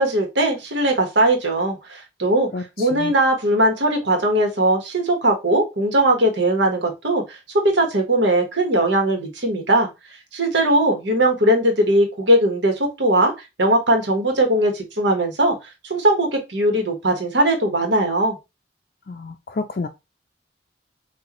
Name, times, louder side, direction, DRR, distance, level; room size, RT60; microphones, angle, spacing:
voice 1, 0.0-2.5 2.8-7.4 7.6-9.9 10.3-13.3 13.6-15.5 15.9-18.4, right 1 dB, 80° right, 1.4 m, -19 dB
voice 2, 2.5-3.1 19.1-19.9, left 3 dB, 50° left, 0.4 m, -30 dB
6.3 x 2.6 x 3.1 m
head